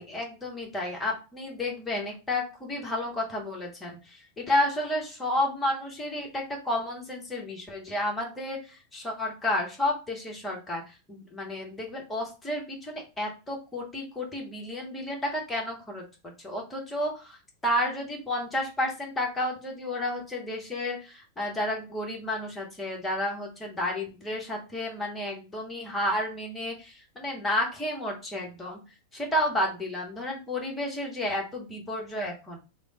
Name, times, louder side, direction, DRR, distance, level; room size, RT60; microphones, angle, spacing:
voice 1, 0.0-4.0 4.4-10.8 11.1-17.4 17.6-28.8 29.1-32.6, left 1 dB, 10° left, -1 dB, 0.9 m, -31 dB
3.1 x 2.0 x 2.8 m, 0.31 s
figure-of-eight pair, 90°, 0 cm